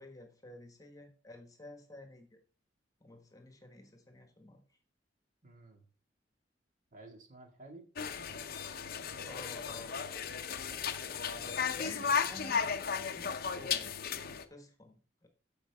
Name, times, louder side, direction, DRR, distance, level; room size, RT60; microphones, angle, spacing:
voice 1, 0.0-2.4 3.0-4.8 9.2-10.2 11.5-12.6 13.1-13.9 14.5-15.3, left 2 dB, 20° left, 5 dB, 1.3 m, -51 dB
voice 2, 5.4-5.8 6.9-8.4 11.3-11.9, right 2 dB, 45° right, 3 dB, 2.1 m, -54 dB
sound 1, 8.0-14.4, left 6 dB, 55° left, 0.7 m, -35 dB
14.0 x 5.2 x 3.5 m, 0.37 s
head